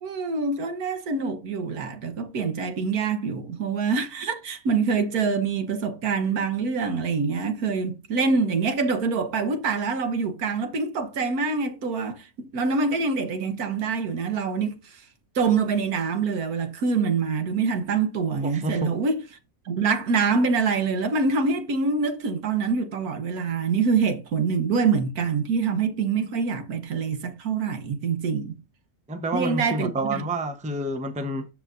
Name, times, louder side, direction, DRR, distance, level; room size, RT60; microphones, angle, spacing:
voice 1, 0.0-15.0 15.3-19.2 19.6-28.6 29.3-30.2, right 5 dB, 80° right, 1.6 m, -25 dB
voice 2, 18.4-18.9 29.1-31.5, right 1 dB, 5° right, 0.6 m, -29 dB
13.0 x 4.8 x 2.5 m
omnidirectional pair, 1.5 m